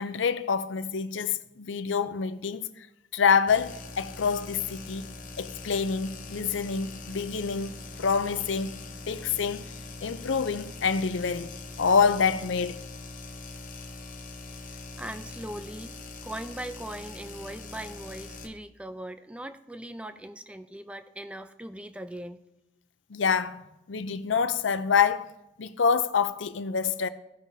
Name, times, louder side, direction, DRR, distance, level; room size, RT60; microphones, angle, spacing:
voice 1, 0.0-2.9 3.1-8.8 9.1-9.7 10.0-11.5 11.8-12.9 23.1-23.6 23.9-25.3 25.6-27.1, left 6 dB, 80° left, 0.5 m, -26 dB
sound 1, 3.5-18.5, left 3 dB, 45° left, 0.8 m, -42 dB
voice 2, 15.0-16.0 16.2-22.4, right 1 dB, 5° right, 0.4 m, -40 dB
16.0 x 6.1 x 2.7 m
head